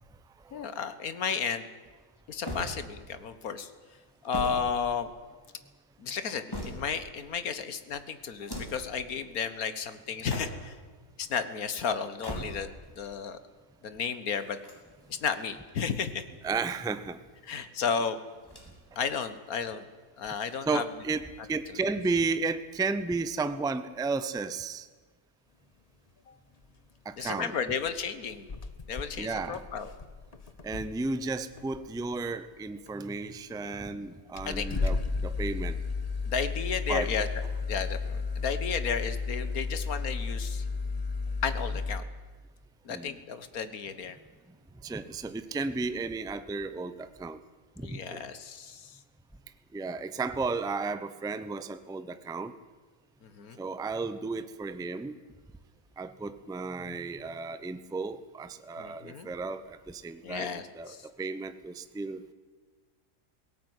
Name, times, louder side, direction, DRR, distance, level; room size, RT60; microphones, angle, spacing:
voice 1, 0.5-1.7 2.3-3.7 4.2-5.1 6.0-10.7 11.2-12.7 13.0-13.4 13.8-14.6 15.1-16.2 17.4-18.2 19.0-19.8 20.2-20.8 27.2-28.5 28.9-29.9 34.5-34.7 36.3-37.3 37.7-40.7 41.4-42.0 42.9-44.2 47.8-49.0 53.2-53.6 58.8-59.3 60.2-61.1, left 6 dB, 65° left, 12 dB, 1.7 m, -33 dB
sound 1, 2.4-3.2 4.0-5.4 6.1-7.1 8.3-8.9 10.1-10.8 12.0-12.9 14.4-15.4 16.3-17.2 18.4-19.0 19.3-19.4 20.4-21.2, equal, 15° left, 4.0 m, -41 dB
voice 2, 16.4-17.2 20.7-24.9 27.0-27.5 29.2-29.6 30.6-35.8 36.9-37.1 42.9-43.2 44.8-47.4 47.8-48.2 49.7-52.5 53.6-55.1 56.0-62.2, right 4 dB, 5° right, 12 dB, 0.4 m, -33 dB
sound 2, 27.2-27.4 27.9-28.0 28.3-31.1 31.6-32.0 32.9-33.0 33.8-33.9 34.3-42.0, left 4 dB, 30° left, 0.8 m, -33 dB
18.0 x 17.5 x 9.6 m, 1.4 s
omnidirectional pair, 1.7 m